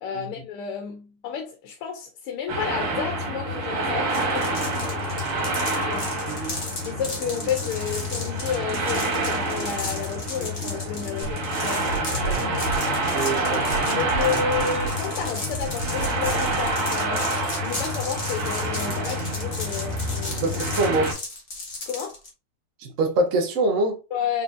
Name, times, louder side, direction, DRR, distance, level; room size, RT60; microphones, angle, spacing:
voice 1, 0.0-4.6 5.9-6.1 6.8-11.9 12.2-12.4 13.9-20.5 21.9-22.2 24.1-24.4, left 7 dB, 85° left, 1.7 m, -31 dB
sound 1, 2.5-21.1, right 1 dB, 85° right, 2.4 m, -27 dB
sound 2, 4.1-22.3, left 2 dB, 30° left, 1.2 m, -35 dB
sound 3, 11.2-17.0, right 2 dB, 50° left, 1.5 m, -33 dB
voice 2, 13.1-13.6 20.4-21.1 22.8-24.0, right 2 dB, 45° right, 1.1 m, -24 dB
4.4 x 4.2 x 2.4 m
omnidirectional pair, 2.4 m